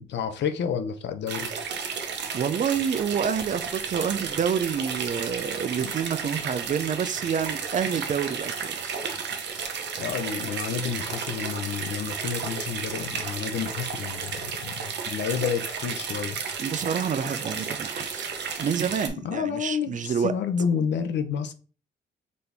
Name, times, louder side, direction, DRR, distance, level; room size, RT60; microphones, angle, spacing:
voice 1, 0.0-1.5 5.8-5.9 10.0-16.4 17.6-17.7 19.2-21.5, left 7 dB, 65° left, 0.6 m, -30 dB
sound 1, 1.3-19.1, right 6 dB, 60° right, 0.8 m, -33 dB
voice 2, 2.3-9.0 9.5-9.7 16.6-18.3 18.6-20.3, right 7 dB, 40° right, 0.4 m, -28 dB
4.1 x 2.8 x 3.4 m
cardioid pair, 90°, 20 cm